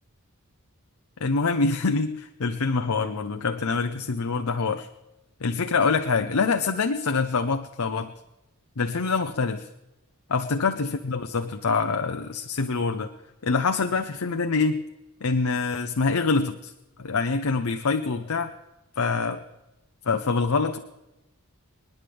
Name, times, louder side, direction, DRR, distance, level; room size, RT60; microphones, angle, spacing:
voice 1, 1.2-4.9 5.4-8.1 8.8-9.7 10.3-13.1 13.4-14.8 15.2-16.7 17.0-18.5 19.0-19.4 20.0-20.8, left 4 dB, 75° left, 7 dB, 0.7 m, -25 dB
28.5 x 10.0 x 3.5 m, 0.99 s
head